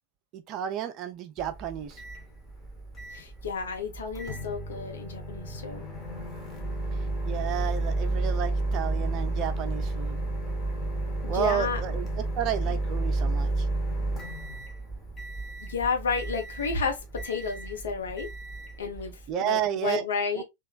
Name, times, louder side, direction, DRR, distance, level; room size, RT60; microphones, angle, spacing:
voice 1, 0.3-2.0 7.2-10.2 11.3-13.7 19.3-20.0 20.3-20.4, right 10 dB, 35° right, 0.4 m, -31 dB
Microwave oven, 1.4-19.3, right 2 dB, 15° left, 0.9 m, -32 dB
voice 2, 3.1-5.8 11.2-11.8 15.6-18.3 18.8-20.4, left 5 dB, 65° left, 0.8 m, -31 dB
3.0 x 2.3 x 2.3 m
figure-of-eight pair, 90°, 0 cm